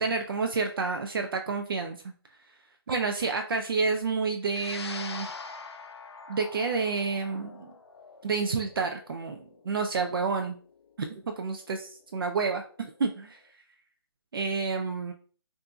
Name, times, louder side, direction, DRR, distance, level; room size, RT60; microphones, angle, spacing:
voice 1, 0.0-2.0 2.9-5.3 6.3-7.7 8.2-10.6 11.0-13.4 14.3-15.1, right 4 dB, 60° right, 5 dB, 0.4 m, -29 dB
sound 1, 4.5-13.0, left 4 dB, 80° left, 0.4 m, -44 dB
3.8 x 2.5 x 2.3 m, 0.41 s
hypercardioid pair, 160°, 14 cm